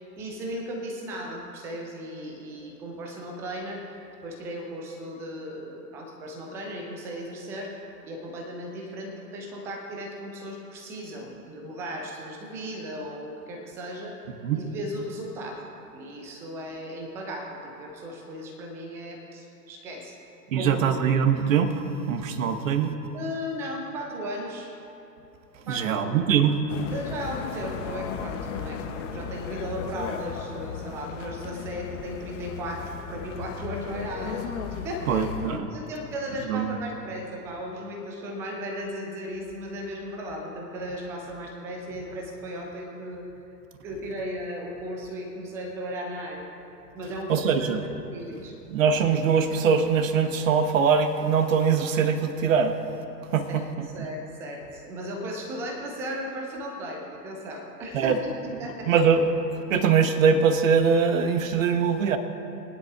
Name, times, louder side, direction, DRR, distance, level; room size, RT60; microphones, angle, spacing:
voice 1, 0.2-7.7 8.0-14.2 14.5-15.6 15.9-20.1 20.5-21.1 23.1-24.7 25.7-26.2 26.9-34.5 34.8-35.3 35.7-43.2 43.8-46.5 46.9-48.5 53.5-53.7 53.9-59.0, equal, 5° right, 1 dB, 0.4 m, -36 dB
voice 2, 20.5-23.0 25.7-26.6 35.1-35.7 36.5-36.8 47.3-47.8 48.7-52.8 53.3-53.9 57.9-58.2 58.9-59.3 59.7-62.2, right 6 dB, 50° right, 8 dB, 1.2 m, -22 dB
sound 1, 26.7-35.6, left 6 dB, 45° left, 1.1 m, -36 dB
22.5 x 10.0 x 2.4 m, 2.9 s
figure-of-eight pair, 105°, 50 cm